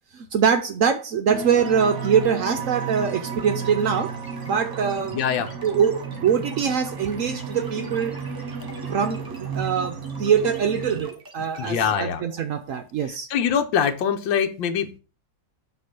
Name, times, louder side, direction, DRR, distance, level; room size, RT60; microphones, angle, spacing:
voice 1, 0.1-4.1 4.5-5.2 5.6-8.2 8.9-13.3, right 7 dB, 75° right, 0.7 m, -23 dB
sound 1, 1.3-11.0, right 5 dB, 50° right, 1.1 m, -33 dB
sound 2, 1.6-12.0, right 2 dB, 15° right, 1.4 m, -43 dB
voice 2, 5.1-5.5 11.6-12.2 13.0-15.0, left 7 dB, 85° left, 1.5 m, -24 dB
7.7 x 3.1 x 5.9 m
omnidirectional pair, 2.0 m